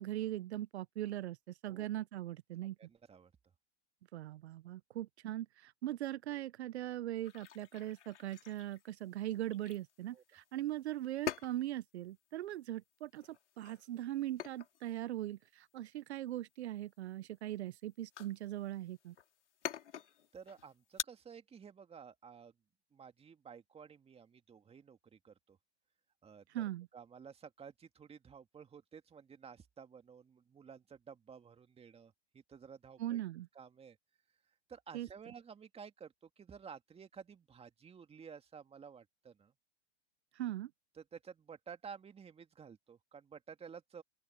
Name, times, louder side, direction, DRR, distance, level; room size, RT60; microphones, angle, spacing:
voice 1, 0.0-2.7 4.1-19.1 26.5-26.9 33.0-33.5 34.9-35.1 40.3-40.7, right 13 dB, 65° right, 1.2 m, -40 dB
voice 2, 2.8-3.3 10.1-10.2 20.3-22.5 22.9-25.6 26.2-26.6 26.9-33.2 33.5-34.0 34.7-39.5 40.9-44.0, right 6 dB, 15° right, 2.3 m, -53 dB
sound 1, 7.2-21.0, left 9 dB, 80° left, 4.7 m, -48 dB
open air
hypercardioid pair, 110°, 35 cm